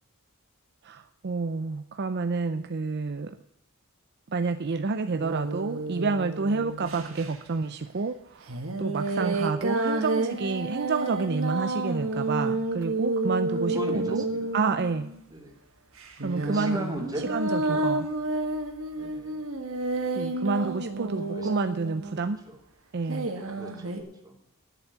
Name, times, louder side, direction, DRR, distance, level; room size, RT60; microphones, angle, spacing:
voice 1, 0.8-3.4 4.3-14.2 14.5-15.1 16.2-16.8 17.3-18.1 20.1-22.4 22.9-23.3, right 4 dB, 50° right, 9 dB, 0.5 m, -29 dB
sound 1, 5.2-7.3 8.5-15.2 16.0-22.4 23.1-24.0, right 2 dB, 65° right, 1.9 m, -30 dB
voice 2, 9.1-9.5 13.7-14.5 15.3-15.5 16.3-17.8 18.9-19.4 21.0-21.5 22.1-22.6 23.5-24.3, right 1 dB, 15° right, 0 dB, 2.9 m, -38 dB
11.0 x 7.1 x 8.5 m, 0.77 s
head